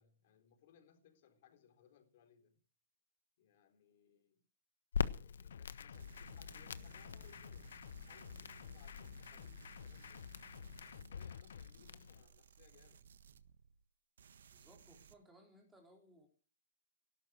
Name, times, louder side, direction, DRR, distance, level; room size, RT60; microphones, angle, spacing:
voice 1, 0.0-2.6 3.4-4.4 5.0-10.2 10.9-13.1, left 8 dB, 40° left, 3.8 m, -67 dB
Crackle, 4.9-12.2, left 7 dB, 90° left, 1.3 m, -45 dB
sound 1, 5.5-11.7, left 7 dB, 65° left, 0.7 m, -53 dB
sound 2, 5.9-13.9 14.2-15.1, right 7 dB, 65° right, 1.5 m, -60 dB
voice 2, 14.5-16.3, right 1 dB, 5° right, 3.8 m, -63 dB
18.0 x 12.0 x 6.2 m
hypercardioid pair, 175°, 0 cm